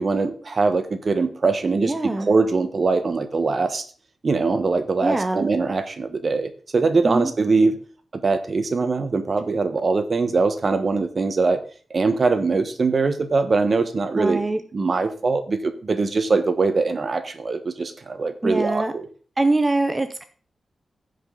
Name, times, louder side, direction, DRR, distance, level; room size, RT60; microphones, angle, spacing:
voice 1, 0.0-3.8 4.2-7.8 8.2-11.6 11.9-14.4 14.7-19.1, right 4 dB, 40° right, 9 dB, 1.1 m, -22 dB
voice 2, 1.8-2.3 5.0-5.5 7.0-7.3 14.1-14.6 18.4-18.9 19.4-20.2, right 2 dB, 20° right, 9 dB, 0.7 m, -23 dB
15.5 x 5.3 x 3.9 m, 0.40 s
wide cardioid pair, 140°, 0 cm